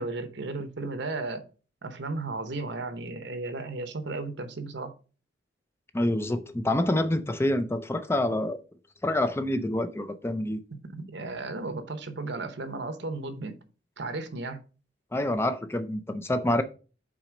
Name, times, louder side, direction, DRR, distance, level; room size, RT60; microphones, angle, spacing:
voice 1, 0.0-1.4 1.8-4.9 10.8-13.6 14.0-14.6, right 3 dB, 65° right, 0.9 m, -34 dB
voice 2, 5.9-8.6 9.0-10.6 15.1-16.6, left 1 dB, 15° left, 0.5 m, -27 dB
6.1 x 4.2 x 5.0 m
head